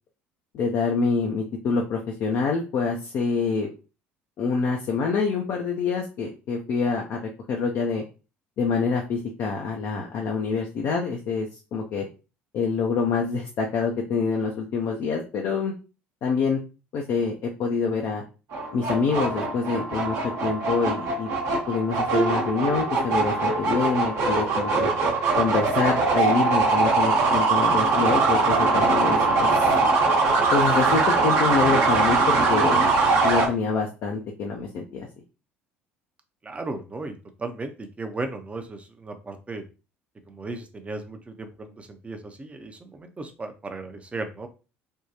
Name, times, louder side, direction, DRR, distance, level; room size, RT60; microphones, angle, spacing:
voice 1, 0.5-3.7 4.4-8.0 8.6-12.1 12.5-15.7 16.2-16.6 16.9-18.2 18.7-20.2 20.4-21.3 21.7-24.9 25.4-29.7 30.5-32.9 33.2-35.1, left 5 dB, 50° left, 0 dB, 0.5 m, -26 dB
sound 1, 18.5-33.5, right 3 dB, 55° right, 1.0 m, -22 dB
voice 2, 36.4-39.6 40.3-44.5, right 3 dB, 20° right, 6 dB, 0.6 m, -36 dB
3.5 x 2.3 x 2.8 m, 0.32 s
figure-of-eight pair, 60°, 6 cm